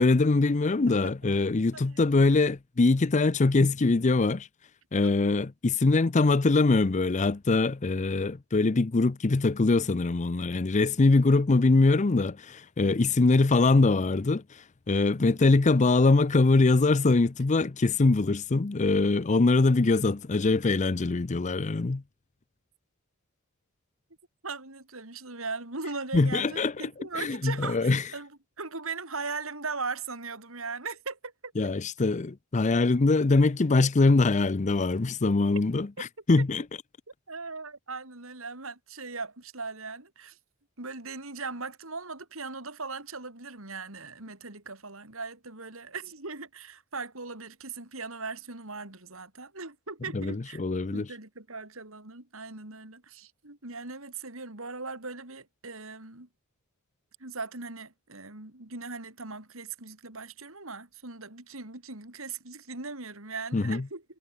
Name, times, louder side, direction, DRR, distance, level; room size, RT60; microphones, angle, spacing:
voice 1, 0.0-4.5 4.9-14.4 14.9-22.0 26.1-26.9 27.2-28.0 31.6-36.6 50.1-51.1 63.5-63.8, left 3 dB, 35° left, 0.6 m, -23 dB
voice 2, 24.4-31.5 37.3-40.4 40.8-50.6 50.9-56.3 57.2-64.0, right 4 dB, 70° right, 4.3 m, -39 dB
head